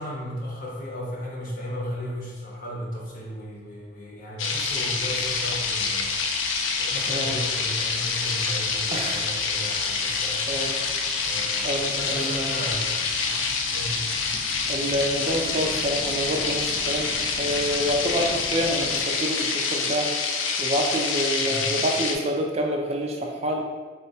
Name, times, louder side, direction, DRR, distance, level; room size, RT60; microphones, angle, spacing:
voice 1, 0.0-6.2 6.8-10.5 11.2-13.0 13.7-14.0 21.4-21.7, equal, 45° left, -3 dB, 0.8 m, -35 dB
sound 1, 4.4-22.1, left 4 dB, 85° left, 0.4 m, -27 dB
sound 2, 4.5-19.0, right 1 dB, 70° right, 0.6 m, -45 dB
voice 2, 8.9-9.2 10.5-10.8 11.6-12.5 14.7-17.1 17.4-23.6, equal, 35° right, 1 dB, 0.3 m, -27 dB
3.6 x 2.2 x 4.1 m, 1.5 s
head